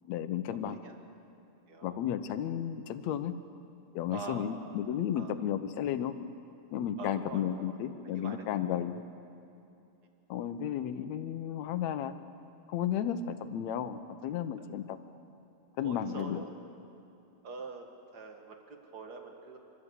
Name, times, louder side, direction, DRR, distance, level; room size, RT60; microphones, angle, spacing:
voice 1, 0.1-0.8 1.8-3.3 4.0-6.1 6.7-9.0 10.3-12.1 12.7-15.0 15.8-16.4, left 9 dB, 75° left, 11 dB, 2.1 m, -33 dB
voice 2, 0.7-1.0 1.7-2.0 4.1-4.7 5.2-5.3 7.0-7.8 8.0-8.4 15.8-16.5 17.4-17.9 18.1-19.6, right 4 dB, 40° right, 3 dB, 1.9 m, -44 dB
29.0 x 12.5 x 8.2 m, 2.7 s
omnidirectional pair, 3.3 m